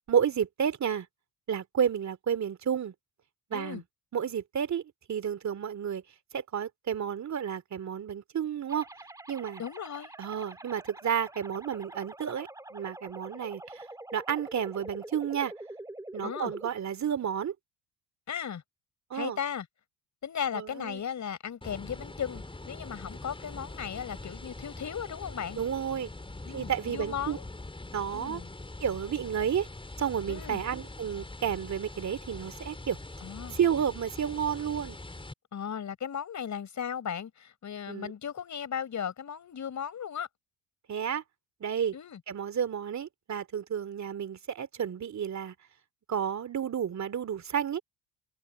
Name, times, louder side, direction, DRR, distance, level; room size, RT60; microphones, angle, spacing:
voice 1, 0.1-1.1 1.5-2.9 3.5-3.8 4.1-4.8 5.1-6.0 6.3-8.9 9.3-9.6 10.2-13.9 14.1-15.5 16.1-17.5 19.1-19.4 20.5-21.0 25.6-26.1 26.5-27.4 27.9-28.4 28.8-29.7 30.0-33.0 33.5-35.0 37.9-38.1 40.9-41.2 41.6-42.0 42.3-45.5 46.1-47.8, right 8 dB, 40° right, 2.8 m, -31 dB
voice 2, 3.5-3.8 9.6-10.1 16.2-16.5 18.3-18.6 19.1-19.7 20.2-25.6 26.5-27.4 28.1-28.5 30.3-30.6 33.2-33.6 35.5-40.3 41.9-42.2, left 8 dB, 40° left, 5.5 m, -36 dB
sound 1, 8.7-16.7, right 2 dB, 10° right, 1.7 m, -45 dB
sound 2, 21.6-35.3, left 2 dB, 10° left, 4.8 m, -43 dB
hypercardioid pair, 75°, 42 cm